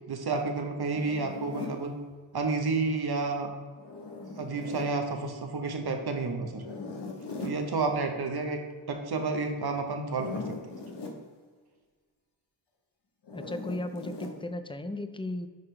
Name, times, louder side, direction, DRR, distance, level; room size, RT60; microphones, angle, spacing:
voice 1, 0.1-2.0 2.3-3.5 4.4-6.6 7.4-8.6 8.9-10.8, right 3 dB, 55° right, 4 dB, 1.1 m, -30 dB
Zipper (clothing), 0.9-1.8 3.8-4.9 6.5-7.6 10.0-11.2 13.2-14.4, left 3 dB, 65° left, 1.1 m, -39 dB
voice 2, 13.3-15.5, left 1 dB, 10° left, 9 dB, 0.4 m, -36 dB
10.5 x 3.8 x 3.3 m, 1.5 s
wide cardioid pair, 85°, 44 cm